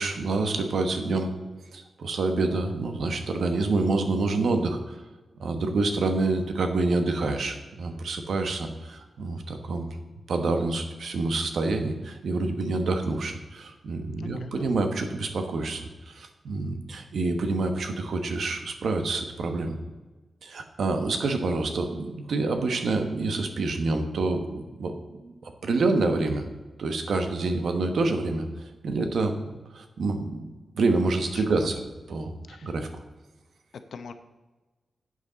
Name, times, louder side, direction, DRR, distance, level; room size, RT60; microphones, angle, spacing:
voice 1, 0.0-1.3 1.7-5.0 5.4-9.9 10.3-19.8 20.4-24.9 25.2-26.5 26.8-28.5 28.8-29.4 29.7-31.8 32.1-32.9, right 3 dB, 70° right, 6 dB, 1.2 m, -27 dB
voice 2, 14.2-14.7 31.3-31.7 32.5-32.7 33.7-34.1, left 5 dB, 80° left, 9 dB, 0.8 m, -43 dB
11.5 x 8.0 x 4.0 m, 1.2 s
wide cardioid pair, 145°, 0 cm